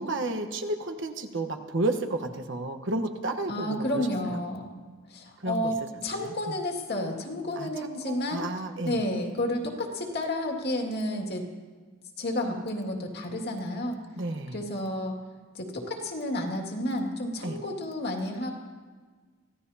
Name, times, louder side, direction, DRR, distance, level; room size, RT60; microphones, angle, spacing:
voice 1, 0.0-4.4 5.4-5.7 6.1-6.6 7.6-9.0 14.2-14.6 17.4-17.6, right 2 dB, 60° right, 7 dB, 1.2 m, -32 dB
voice 2, 3.5-4.7 5.1-8.4 8.8-11.4 12.2-14.0 14.5-15.2 15.5-18.5, left 1 dB, 50° left, 1 dB, 2.2 m, -31 dB
24.5 x 16.0 x 2.8 m, 1.5 s
head